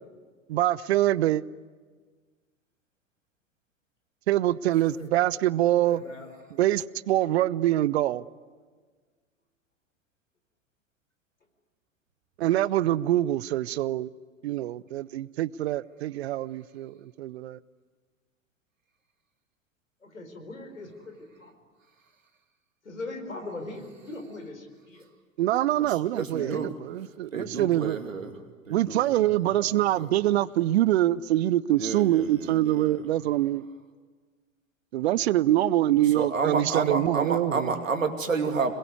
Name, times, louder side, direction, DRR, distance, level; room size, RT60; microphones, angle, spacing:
voice 1, 0.5-1.4 4.3-6.0 6.6-8.2 12.4-14.1 14.4-17.6 25.4-28.0 28.7-33.7 34.9-37.7, right 14 dB, 55° right, 0.7 m, -25 dB
voice 2, 4.9-5.4 5.8-6.3 12.5-12.6 20.0-21.5 22.8-25.0 26.3-26.6 29.5-29.7, left 2 dB, 80° left, 4.8 m, -40 dB
voice 3, 25.8-26.7 27.3-28.4 28.7-29.5 30.0-30.1 31.8-33.0 36.0-38.7, right 4 dB, 75° right, 2.7 m, -30 dB
27.0 x 21.5 x 9.6 m
figure-of-eight pair, 90°, 39 cm